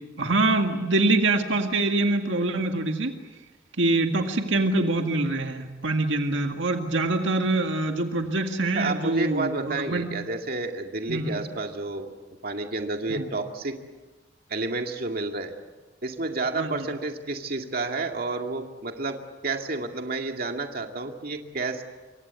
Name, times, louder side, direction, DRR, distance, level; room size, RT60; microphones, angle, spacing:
voice 1, 0.2-3.1 3.8-10.1 11.1-11.5 13.1-13.3 16.6-16.9, right 2 dB, 75° right, 4 dB, 2.0 m, -25 dB
voice 2, 8.8-12.1 12.4-13.8 14.5-15.5 16.0-19.2 19.4-21.8, right 3 dB, 55° right, 4 dB, 2.2 m, -30 dB
27.0 x 24.0 x 8.2 m, 1.2 s
head